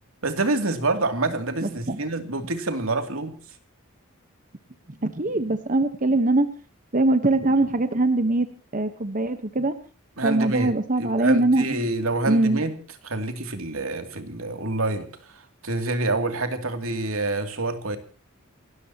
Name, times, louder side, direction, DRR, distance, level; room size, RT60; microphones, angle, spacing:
voice 1, 0.2-3.3 10.2-10.7 11.0-12.7 13.0-18.0, right 2 dB, 75° right, 7 dB, 2.7 m, -27 dB
voice 2, 1.6-2.0 5.0-6.5 6.9-8.5 8.7-9.8 10.2-11.8 12.3-12.6, right 2 dB, 40° right, 9 dB, 1.1 m, -22 dB
28.5 x 13.5 x 2.9 m, 0.39 s
head